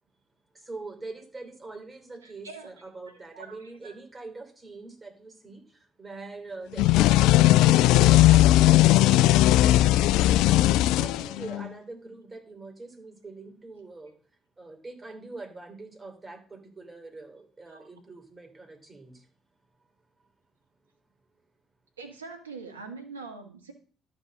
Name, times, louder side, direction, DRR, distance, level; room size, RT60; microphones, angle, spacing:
voice 1, 0.5-14.2 14.6-19.3, right 3 dB, 25° right, 4 dB, 3.1 m, -44 dB
voice 2, 3.3-3.9 22.0-23.7, right 4 dB, 90° right, 6 dB, 1.4 m, -42 dB
sound 1, 6.8-11.7, left 15 dB, 70° left, 0.3 m, -18 dB
12.0 x 4.1 x 6.5 m, 0.40 s
hypercardioid pair, 50°, 0 cm